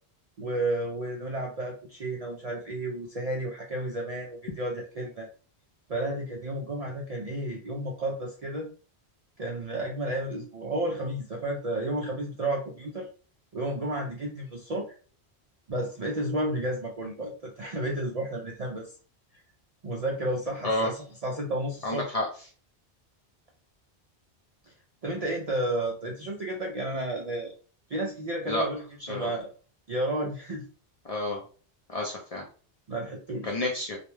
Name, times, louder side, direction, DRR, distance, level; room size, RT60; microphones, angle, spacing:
voice 1, 0.4-5.3 5.9-8.7 9.4-13.1 13.5-14.9 15.7-18.9 19.8-22.0 25.0-27.5 27.9-28.8 29.1-29.5 29.9-30.6 32.9-33.6, right 1 dB, 60° right, 0 dB, 0.4 m, -32 dB
voice 2, 21.8-22.3 28.5-28.7 29.0-29.3 31.1-31.4 31.9-32.4 33.4-34.0, left 1 dB, 50° left, -1 dB, 0.4 m, -29 dB
2.4 x 2.1 x 3.1 m, 0.39 s
omnidirectional pair, 1.1 m